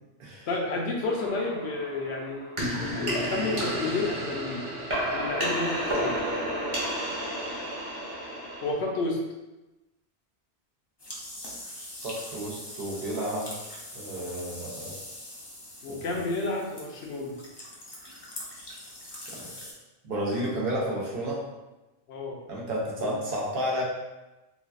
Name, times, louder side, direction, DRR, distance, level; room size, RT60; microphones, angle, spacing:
voice 1, 0.5-2.5 3.0-4.6 5.1-6.2 8.6-9.2 15.8-17.3 22.1-22.4 23.0-23.2, left 3 dB, 75° left, 0 dB, 0.8 m, -31 dB
sound 1, 1.0-8.7, equal, 30° right, 0.9 m, -31 dB
sound 2, 11.0-19.7, left 1 dB, 35° left, 0.4 m, -42 dB
voice 2, 12.0-13.5 13.9-15.0 15.9-16.0 19.2-19.5 20.0-21.4 22.5-23.8, equal, 60° right, -3 dB, 0.8 m, -31 dB
3.2 x 2.3 x 2.3 m, 1.0 s
omnidirectional pair, 1.1 m